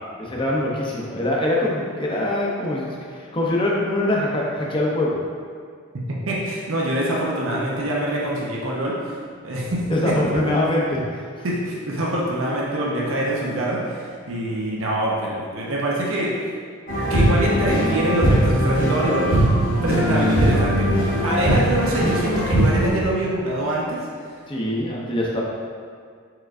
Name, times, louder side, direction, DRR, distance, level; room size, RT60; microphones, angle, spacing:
voice 1, 0.2-5.2 9.9-11.5 24.5-25.4, left 1 dB, 25° left, -3 dB, 0.6 m, -23 dB
voice 2, 6.1-9.0 9.4-10.6 11.4-16.3 17.1-19.3 19.8-20.9 21.2-24.3, right 1 dB, 70° right, -4 dB, 0.7 m, -25 dB
sound 1, 16.9-22.9, right 1 dB, 40° left, 1.1 m, -20 dB
4.7 x 4.5 x 2.5 m, 2.1 s
head